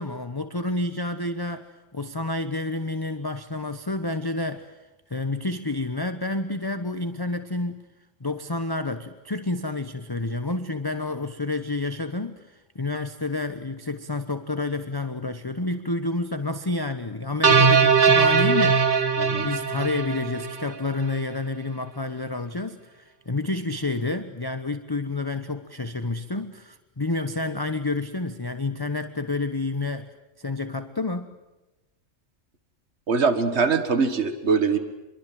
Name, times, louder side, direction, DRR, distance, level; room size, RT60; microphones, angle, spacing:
voice 1, 0.0-1.7 1.9-4.7 5.1-7.8 8.2-19.0 19.3-30.1 30.4-31.3, left 2 dB, 20° left, 9 dB, 1.0 m, -29 dB
sound 1, 17.4-20.8, right 5 dB, 45° right, 1.5 m, -20 dB
voice 2, 19.2-19.5 33.1-34.8, right 5 dB, 60° right, 10 dB, 2.0 m, -22 dB
27.0 x 23.5 x 7.7 m, 1.0 s
omnidirectional pair, 1.3 m